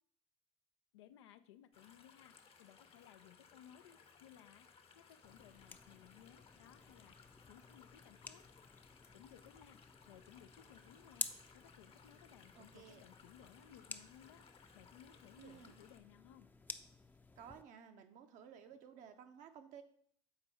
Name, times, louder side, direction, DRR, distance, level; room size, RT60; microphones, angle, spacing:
voice 1, 0.9-4.7 4.9-8.4 9.1-9.8 10.1-11.3 11.5-16.5, left 11 dB, 80° left, 10 dB, 0.4 m, -61 dB
sound 1, 1.7-16.0, left 6 dB, 40° left, 0.8 m, -64 dB
sound 2, 5.2-17.6, left 3 dB, 15° left, 0.5 m, -52 dB
voice 2, 12.6-13.0 15.4-15.7 17.4-19.8, right 8 dB, 60° right, 7 dB, 0.8 m, -56 dB
6.8 x 4.4 x 4.2 m, 0.62 s
hypercardioid pair, 55°, 15 cm